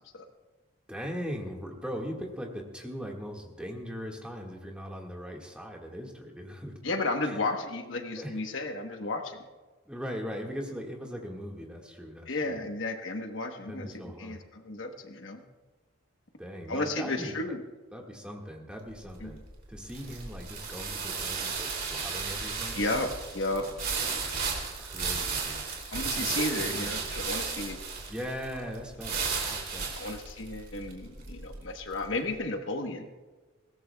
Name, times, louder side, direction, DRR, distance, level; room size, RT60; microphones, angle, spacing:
voice 1, 0.9-6.8 7.2-7.4 8.2-8.4 9.8-12.6 13.7-14.4 16.4-17.5 17.9-19.4 19.7-23.1 23.5-23.6 24.0-24.3 24.8-25.6 26.1-27.1 28.1-30.1, equal, 5° right, -1 dB, 1.7 m, -40 dB
voice 2, 6.8-9.4 12.3-15.4 16.7-17.6 19.2-19.4 22.7-23.7 25.9-27.8 29.9-33.1, left 2 dB, 60° left, 5 dB, 1.1 m, -33 dB
sound 1, 18.9-32.2, right 5 dB, 45° right, 2.7 m, -34 dB
22.0 x 17.5 x 2.3 m, 1.3 s
head